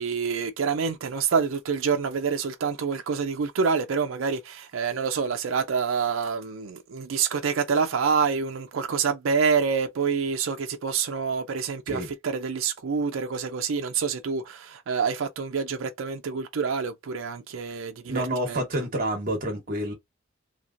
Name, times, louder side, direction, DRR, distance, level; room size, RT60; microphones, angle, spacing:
voice 1, 0.0-18.8, right 5 dB, 70° right, 0.4 m, -27 dB
voice 2, 18.1-19.9, right 1 dB, 45° right, 1.0 m, -28 dB
2.9 x 2.8 x 2.5 m
head